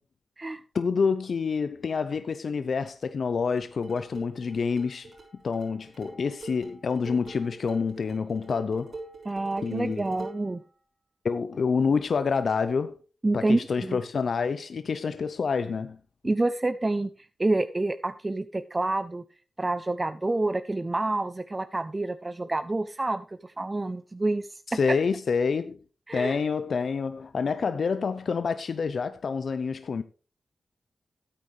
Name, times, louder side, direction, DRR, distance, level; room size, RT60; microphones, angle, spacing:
voice 1, 0.7-5.1 5.4-9.0 9.6-10.0 11.2-13.0 13.3-16.0 24.7-25.8 26.1-30.0, left 5 dB, 70° left, 0.6 m, -27 dB
sound 1, 3.6-10.5, right 3 dB, 70° right, 3.7 m, -44 dB
voice 2, 9.3-10.6 13.2-14.0 16.2-17.1 17.4-19.2 19.6-24.6 26.1-26.4, right 2 dB, 30° right, 0.6 m, -28 dB
14.0 x 8.5 x 3.2 m
cardioid pair, 60°, 0 cm